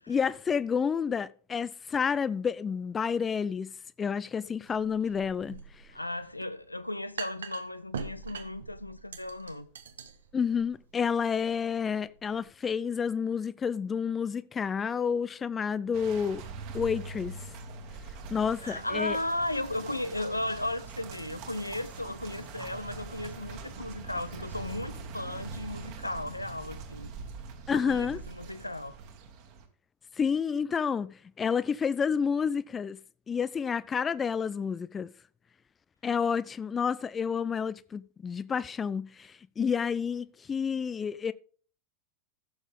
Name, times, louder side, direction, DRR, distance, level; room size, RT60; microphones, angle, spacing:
voice 1, 0.0-3.7 4.0-5.6 10.3-16.4 16.7-17.4 18.3-19.2 27.7-28.2 30.2-33.0 33.3-35.1 36.0-41.3, left 6 dB, 20° left, 0.4 m, -30 dB
sound 1, 4.7-12.5, right 6 dB, 65° right, 1.0 m, -44 dB
voice 2, 5.9-9.7 18.6-27.1 27.7-29.0, left 1 dB, 85° left, 0.7 m, -35 dB
sound 2, 15.9-29.6, right 4 dB, 45° right, 2.0 m, -43 dB
14.0 x 7.2 x 3.6 m
figure-of-eight pair, 90°, 0 cm